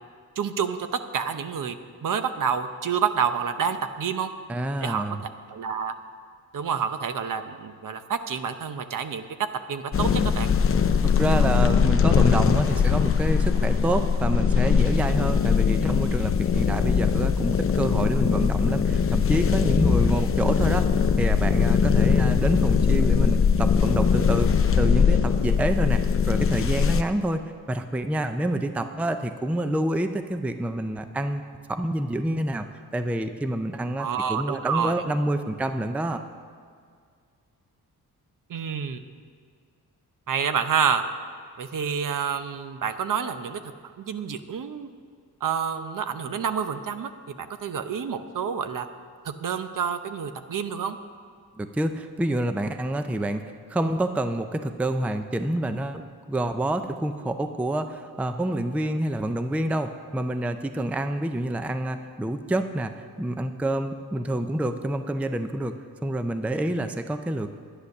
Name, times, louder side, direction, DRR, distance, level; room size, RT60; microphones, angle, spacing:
voice 1, 0.4-0.9 1.1-1.7 2.0-4.3 4.8-5.0 5.5-5.9 6.5-9.2 9.7-10.5 34.0-35.0 38.5-39.0 40.3-41.0 41.6-43.7 44.0-44.9 45.4-48.9 49.2-51.0, right 7 dB, 55° right, 9 dB, 0.8 m, -28 dB
voice 2, 4.5-5.2 11.0-20.9 21.2-31.4 31.7-32.7 32.9-36.2 51.6-65.7 66.0-67.5, right 1 dB, 5° right, 8 dB, 0.4 m, -27 dB
sound 1, 9.9-27.0, left 6 dB, 35° left, 0.6 m, -21 dB
11.0 x 10.0 x 6.6 m, 2.1 s
wide cardioid pair, 120°, 38 cm